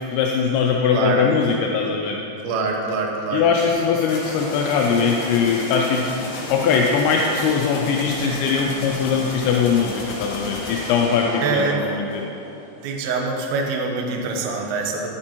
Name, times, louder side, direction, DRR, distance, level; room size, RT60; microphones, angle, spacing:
voice 1, 0.0-2.2 3.3-6.0 6.5-12.2, left 6 dB, 80° left, 1 dB, 2.7 m, -21 dB
voice 2, 0.9-1.3 2.4-3.5 11.4-11.8 12.8-15.1, right 4 dB, 75° right, 1 dB, 2.3 m, -24 dB
sound 1, 4.1-12.7, left 2 dB, 65° left, 2.9 m, -32 dB
11.0 x 8.7 x 2.9 m, 2.8 s
omnidirectional pair, 5.3 m